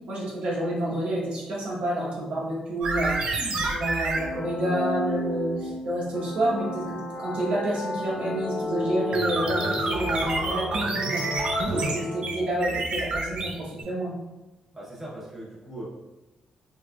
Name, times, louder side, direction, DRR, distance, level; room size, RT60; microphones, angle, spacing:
voice 1, 0.1-11.2 11.7-14.1, right 1 dB, 80° right, -4 dB, 0.9 m, -29 dB
sound 1, 2.8-4.3 9.1-13.8, right 2 dB, 55° right, 0.4 m, -28 dB
sound 2, 4.1-12.8, left 2 dB, 50° left, 0.3 m, -33 dB
voice 2, 9.5-11.5 14.7-15.8, right 1 dB, 10° right, -6 dB, 0.7 m, -39 dB
3.2 x 3.0 x 2.2 m, 1.0 s
wide cardioid pair, 175°, 2 cm